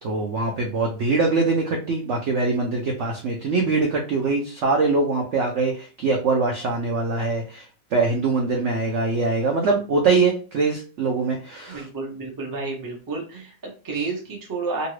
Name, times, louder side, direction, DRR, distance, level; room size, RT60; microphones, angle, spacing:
voice 1, 0.0-7.7 7.9-11.9, right 3 dB, 75° right, 1 dB, 0.6 m, -23 dB
voice 2, 11.7-14.9, right 3 dB, 25° right, -1 dB, 0.4 m, -31 dB
2.8 x 2.6 x 3.1 m, 0.35 s
omnidirectional pair, 1.9 m